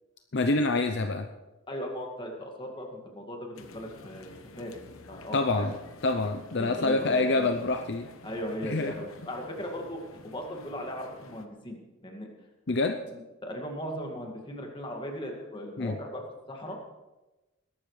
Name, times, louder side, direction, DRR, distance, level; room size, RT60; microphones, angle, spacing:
voice 1, 0.3-1.3 5.3-5.7 6.0-8.1 8.6-8.9 12.7-13.0 15.8-16.0, left 2 dB, 55° left, 6 dB, 0.7 m, -26 dB
voice 2, 1.7-4.8 5.1-5.8 6.6-7.5 8.2-12.3 13.1-16.8, equal, 25° left, 1 dB, 2.1 m, -38 dB
sound 1, 3.5-11.5, left 2 dB, 80° left, 1.2 m, -50 dB
21.0 x 12.0 x 3.3 m, 1.1 s
head